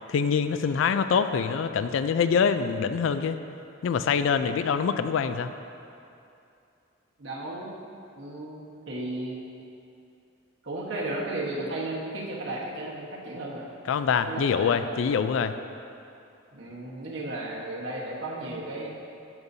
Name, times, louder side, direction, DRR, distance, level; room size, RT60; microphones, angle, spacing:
voice 1, 0.1-3.4 3.8-5.5 13.9-15.5, left 6 dB, 70° left, 11 dB, 0.3 m, -25 dB
voice 2, 7.2-7.7 8.1-9.4 10.6-13.7 14.3-15.0 16.5-18.9, right 2 dB, 70° right, -4 dB, 1.3 m, -34 dB
13.0 x 5.3 x 2.7 m, 2.6 s
head